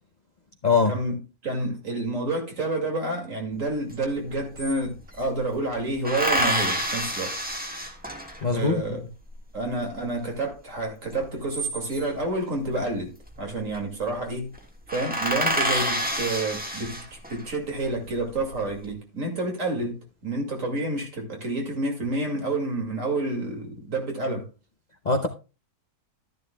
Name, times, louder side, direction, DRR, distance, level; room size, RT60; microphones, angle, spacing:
voice 1, 0.6-0.9 8.4-9.0 25.0-25.3, left 4 dB, 40° left, 0.7 m, -22 dB
voice 2, 1.4-7.3 8.5-9.0 9.5-13.1 13.4-14.5 14.9-24.5, right 2 dB, 60° right, 2.6 m, -29 dB
sound 1, 3.9-4.0 4.2-5.3 6.0-8.6 11.2-12.2 13.4-13.8 14.1-14.2 14.5-14.6 14.9-17.4 18.0-18.7, right 1 dB, 5° right, 1.4 m, -28 dB
12.5 x 10.5 x 2.3 m
omnidirectional pair, 1.5 m